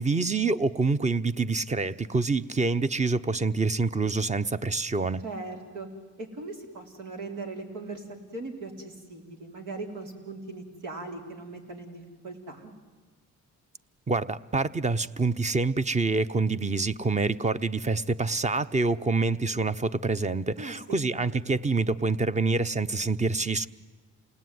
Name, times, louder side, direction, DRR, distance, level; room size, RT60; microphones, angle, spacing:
voice 1, 0.0-5.2 14.1-23.7, right 3 dB, 25° right, 13 dB, 0.9 m, -26 dB
voice 2, 5.2-5.9 6.2-8.1 8.3-12.7 20.6-21.1, right 3 dB, 85° right, 3 dB, 4.1 m, -39 dB
28.0 x 19.5 x 9.4 m, 1.4 s
cardioid pair, 90°, 30 cm